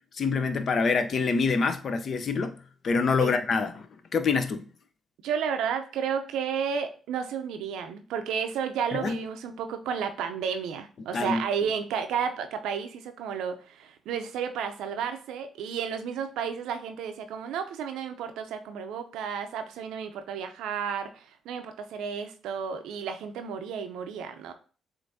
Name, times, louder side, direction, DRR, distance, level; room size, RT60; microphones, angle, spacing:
voice 1, 0.1-2.5 2.8-4.7 8.9-9.2 11.1-11.4, left 4 dB, 55° left, 0.5 m, -26 dB
voice 2, 5.2-24.5, right 7 dB, 80° right, 0.5 m, -32 dB
7.3 x 2.6 x 2.6 m
supercardioid pair, 55°, 0 cm